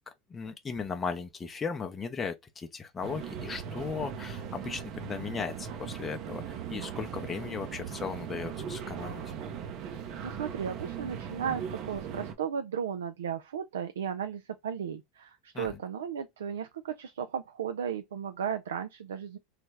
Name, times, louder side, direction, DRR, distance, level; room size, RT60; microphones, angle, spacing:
voice 1, 0.3-6.4 6.7-9.2 15.5-15.7, left 5 dB, 25° left, 0.5 m, -36 dB
sound 1, 3.0-12.3, right 8 dB, 55° right, 0.6 m, -39 dB
voice 2, 9.9-19.4, right 8 dB, 85° right, 0.3 m, -35 dB
3.3 x 2.1 x 3.3 m
hypercardioid pair, 90°, 0 cm